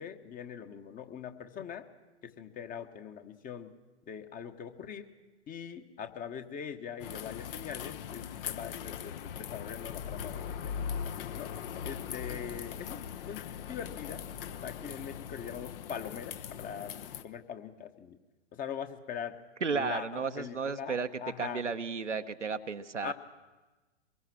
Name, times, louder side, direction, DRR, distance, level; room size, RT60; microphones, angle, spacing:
voice 1, 0.0-1.9 2.2-3.7 4.1-5.1 5.5-11.5 11.8-14.2 14.5-17.0 17.2-18.2 18.5-19.4 19.7-21.7 23.0-23.1, left 8 dB, 25° left, 9 dB, 1.4 m, -42 dB
sound 1, 7.0-17.2, left 8 dB, 50° left, 1.2 m, -40 dB
voice 2, 19.6-21.1 21.4-23.1, right 5 dB, 90° right, 8 dB, 1.1 m, -33 dB
24.0 x 21.5 x 6.2 m, 1.2 s
figure-of-eight pair, 105°, 35 cm